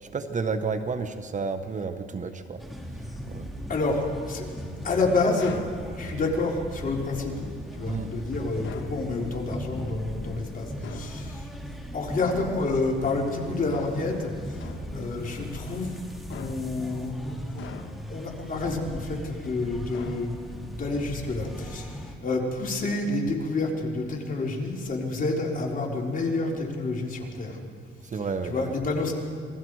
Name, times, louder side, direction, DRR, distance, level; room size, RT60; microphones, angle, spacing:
voice 1, 0.0-2.6 3.3-3.5 7.9-8.1 28.0-28.7, right 4 dB, 40° right, 9 dB, 1.2 m, -31 dB
sound 1, 2.6-22.1, equal, ahead, 2.8 m, -38 dB
voice 2, 3.7-4.5 4.8-5.6 5.9-7.4 7.7-11.5 11.9-16.0 16.3-17.7 18.1-20.4 20.7-27.6 28.1-29.1, left 3 dB, 45° left, -1 dB, 4.0 m, -29 dB
sound 2, 5.4-5.8 8.6-9.0 10.8-11.2 13.7-14.1 14.6-15.0 16.3-16.8 17.6-18.2 19.9-20.6, left 7 dB, 70° left, 1.6 m, -43 dB
27.0 x 20.0 x 4.8 m, 2.3 s
cardioid pair, 90°, 20 cm